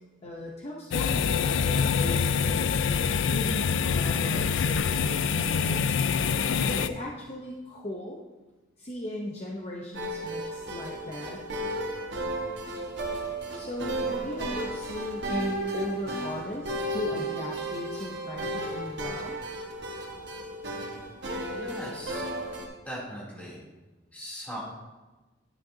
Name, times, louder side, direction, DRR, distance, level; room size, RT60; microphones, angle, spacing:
voice 1, 0.2-5.8 6.7-8.2 8.8-11.4 13.5-19.4, left 1 dB, 35° left, -2 dB, 0.9 m, -37 dB
sound 1, 0.9-6.9, left 6 dB, 80° left, 0.4 m, -25 dB
sound 2, 9.9-22.7, right 1 dB, 65° right, 1.5 m, -34 dB
voice 2, 21.4-22.2 22.8-23.6 24.1-24.6, equal, 10° left, -6 dB, 3.2 m, -39 dB
10.5 x 9.6 x 2.8 m, 1.1 s
head